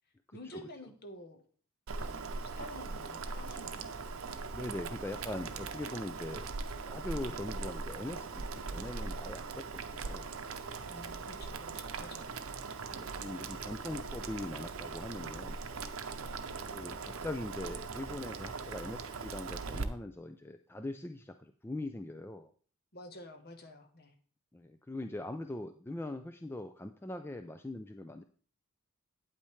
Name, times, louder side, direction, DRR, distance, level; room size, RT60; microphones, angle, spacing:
voice 1, 0.3-1.4 2.0-2.1 2.4-3.9 7.2-7.4 10.9-12.6 16.2-16.4 22.9-24.1, left 1 dB, 45° left, 7 dB, 1.1 m, -50 dB
Boiling, 1.9-19.8, right 4 dB, 75° right, 0.7 m, -40 dB
voice 2, 4.5-6.5 6.9-8.4 8.7-10.3 12.9-15.6 16.7-22.5 24.5-28.2, left 1 dB, 10° left, 7 dB, 0.3 m, -41 dB
8.7 x 8.7 x 3.2 m, 0.43 s
head